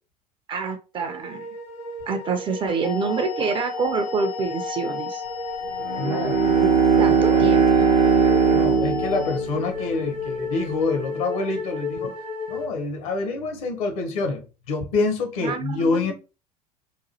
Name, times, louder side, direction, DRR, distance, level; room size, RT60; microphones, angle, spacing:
voice 1, 0.5-1.5 2.1-5.2 6.4-7.8 15.4-16.1, right 5 dB, 25° right, 0.4 m, -27 dB
sound 1, 1.0-12.7, left 4 dB, 80° left, 1.3 m, -34 dB
sound 2, 2.8-9.4, left 7 dB, 40° left, 0.4 m, -33 dB
Bowed string instrument, 5.8-10.4, right 6 dB, 70° right, 0.8 m, -20 dB
voice 2, 6.0-6.5 7.1-7.5 8.5-12.2 12.5-16.1, left 3 dB, 60° left, 0.8 m, -27 dB
2.9 x 2.2 x 2.8 m
figure-of-eight pair, 70°, 21 cm